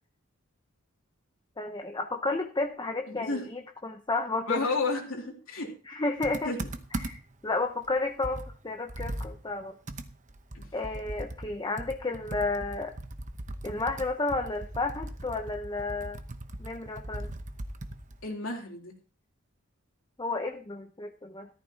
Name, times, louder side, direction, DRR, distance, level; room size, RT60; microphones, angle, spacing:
voice 1, 1.6-4.7 5.9-6.5 6.9-9.8 10.7-13.0 13.6-16.2 16.6-17.3 20.2-21.5, left 3 dB, 20° left, 4 dB, 0.8 m, -32 dB
voice 2, 3.1-3.4 4.5-5.7 6.4-6.6 10.5-10.6 18.2-18.9, left 3 dB, 70° left, 0 dB, 3.3 m, -31 dB
Computer keyboard, 6.2-7.4 7.8-7.9 8.2-11.5 11.8-18.3, right 1 dB, 35° right, 1.0 m, -39 dB
14.5 x 13.5 x 2.9 m, 0.35 s
head